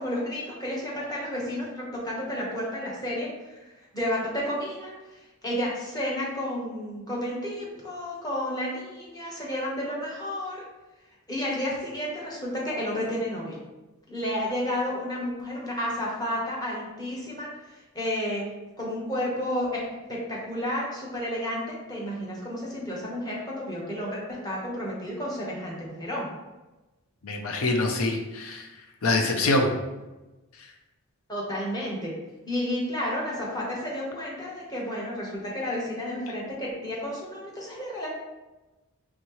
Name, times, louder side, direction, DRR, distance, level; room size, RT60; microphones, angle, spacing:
voice 1, 0.0-3.6 3.9-10.6 11.3-13.6 14.1-19.8 20.1-26.3 31.3-32.1 32.5-38.1, left 1 dB, 20° left, -4 dB, 1.0 m, -31 dB
voice 2, 27.2-28.7 29.0-29.7, left 2 dB, 80° left, 3 dB, 0.6 m, -25 dB
4.3 x 3.6 x 3.0 m, 1.1 s
head